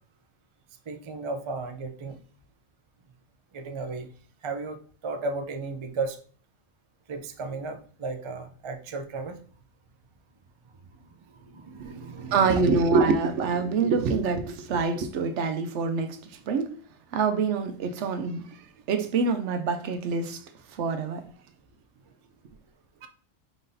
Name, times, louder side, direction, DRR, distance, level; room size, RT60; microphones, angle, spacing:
voice 1, 0.9-2.2 3.5-4.1 4.4-6.2 7.1-9.4 10.9-12.8 23.0-23.1, right 3 dB, 45° right, 0.3 m, -35 dB
voice 2, 12.3-16.7 17.1-20.4 20.7-21.3, right 4 dB, 70° right, 0.9 m, -26 dB
5.0 x 3.8 x 2.6 m
omnidirectional pair, 1.3 m